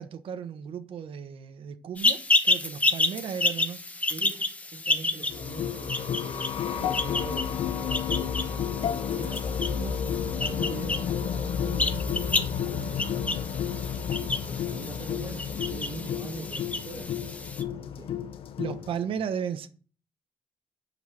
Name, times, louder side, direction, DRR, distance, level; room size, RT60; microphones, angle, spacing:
voice 1, 0.0-3.9 9.8-10.0 18.6-19.7, right 7 dB, 70° right, 1.1 m, -35 dB
sound 1, 2.0-17.6, left 2 dB, 15° left, 1.1 m, -30 dB
voice 2, 4.1-9.6 10.0-13.8 14.5-18.2 19.0-19.2, right 4 dB, 50° right, 2.8 m, -43 dB
sound 2, 5.3-19.0, left 8 dB, 80° left, 1.0 m, -31 dB
sound 3, 12.6-13.5 14.1-14.8 15.5-16.1 16.9-17.5, left 4 dB, 55° left, 2.3 m, -51 dB
10.5 x 6.3 x 7.7 m
cardioid pair, 130°, 9 cm